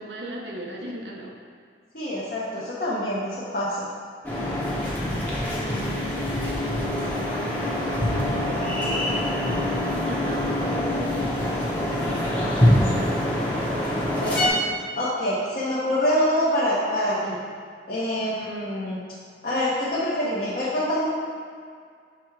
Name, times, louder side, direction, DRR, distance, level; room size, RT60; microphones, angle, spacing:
voice 1, 0.0-1.3 5.1-13.3 18.2-18.3, right 1 dB, 80° right, -1 dB, 0.9 m, -38 dB
voice 2, 1.9-3.9 12.4-12.6 14.2-14.6 15.0-17.4 17.9-19.0 19.4-21.1, left 1 dB, 50° left, -9 dB, 1.0 m, -25 dB
sound 1, 4.2-14.5, left 1 dB, 10° left, 0.9 m, -25 dB
6.1 x 3.5 x 4.7 m, 2.1 s
head